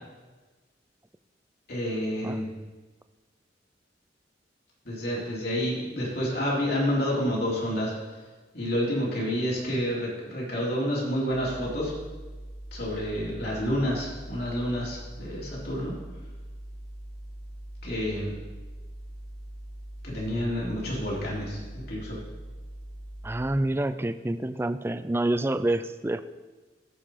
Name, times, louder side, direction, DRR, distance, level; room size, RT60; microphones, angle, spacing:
voice 1, 1.7-2.5 4.9-7.9 8.5-11.9 12.7-15.9 17.8-18.3 20.0-22.2, equal, 60° left, -5 dB, 3.7 m, -29 dB
sound 1, 11.3-23.6, right 1 dB, 40° left, 3.1 m, -42 dB
voice 2, 23.2-26.2, right 1 dB, 15° right, 11 dB, 0.4 m, -27 dB
16.0 x 5.6 x 5.1 m, 1.3 s
head